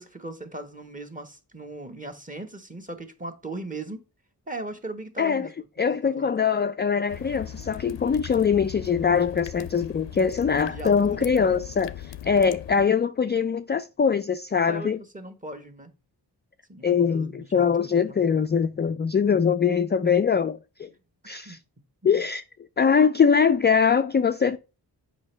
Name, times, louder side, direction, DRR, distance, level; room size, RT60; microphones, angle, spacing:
voice 1, 0.0-4.0 4.5-5.5 6.2-6.3 10.6-11.6 14.7-15.9 16.7-18.2 20.0-20.1 21.4-21.6 22.0-22.2, right 2 dB, 20° right, 1.3 m, -38 dB
voice 2, 5.2-5.5 5.8-15.0 16.8-20.9 21.3-21.6 22.0-22.4 22.8-24.6, left 6 dB, 25° left, 0.3 m, -22 dB
sound 1, 7.1-12.9, left 11 dB, 80° left, 0.6 m, -39 dB
7.5 x 5.2 x 3.3 m
cardioid pair, 60°, 42 cm